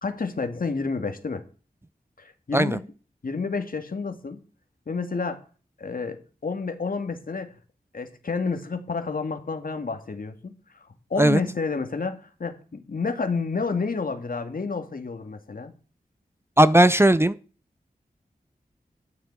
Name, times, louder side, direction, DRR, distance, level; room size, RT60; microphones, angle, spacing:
voice 1, 0.0-1.4 2.2-2.8 3.2-4.4 4.9-5.4 5.8-7.6 7.9-10.5 11.1-15.7, left 4 dB, 65° left, 1.9 m, -30 dB
voice 2, 16.6-17.4, right 1 dB, 15° right, 0.5 m, -17 dB
12.5 x 9.9 x 4.6 m
wide cardioid pair, 75°, 16 cm